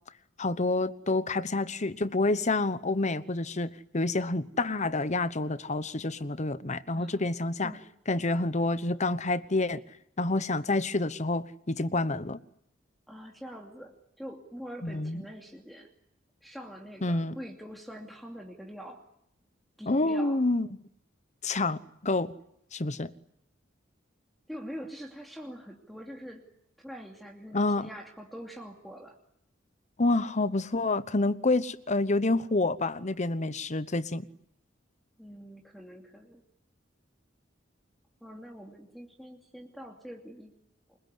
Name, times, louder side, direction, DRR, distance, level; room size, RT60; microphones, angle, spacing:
voice 1, 0.4-7.7 8.1-9.8 10.2-12.4 14.8-15.2 17.0-17.3 19.9-20.7 21.4-22.3 22.7-23.1 27.5-27.9 30.0-34.3, left 2 dB, 35° left, 1.0 m, -28 dB
voice 2, 6.9-7.3 7.6-7.8 13.1-15.9 16.4-19.0 19.8-20.4 24.5-26.4 26.8-29.2 35.2-36.4 38.2-40.5 40.9-41.0, equal, ahead, 2.6 m, -44 dB
28.5 x 21.5 x 9.6 m
head